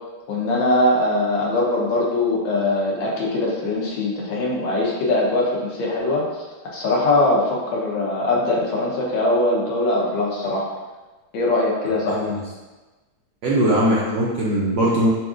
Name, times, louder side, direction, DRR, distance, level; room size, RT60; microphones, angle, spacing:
voice 1, 0.3-6.2 6.6-10.7 11.3-12.4, left 2 dB, 70° left, -4 dB, 1.5 m, -21 dB
voice 2, 13.4-15.1, right 1 dB, 85° right, -5 dB, 0.9 m, -20 dB
5.6 x 2.7 x 2.4 m, 1.2 s
omnidirectional pair, 2.4 m